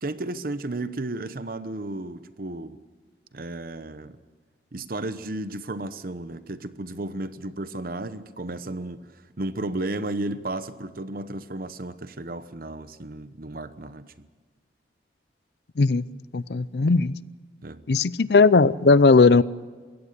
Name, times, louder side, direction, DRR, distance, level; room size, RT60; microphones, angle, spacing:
voice 1, 0.0-2.8 3.3-4.2 4.7-14.3 17.6-17.8, right 2 dB, 55° right, 1.0 m, -33 dB
voice 2, 16.3-17.1 17.9-19.4, left 4 dB, 65° left, 0.6 m, -17 dB
22.5 x 17.0 x 6.8 m
head